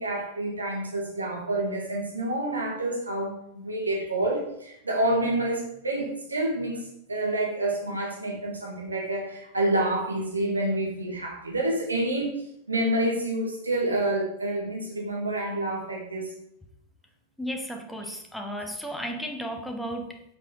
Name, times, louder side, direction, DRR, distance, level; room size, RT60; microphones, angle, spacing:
voice 1, 0.0-12.3 12.7-16.3, right 1 dB, 80° right, -1 dB, 1.7 m, -28 dB
voice 2, 17.4-20.2, equal, 5° left, 3 dB, 1.0 m, -34 dB
6.7 x 5.8 x 3.8 m, 0.77 s
figure-of-eight pair, 90°, 0 cm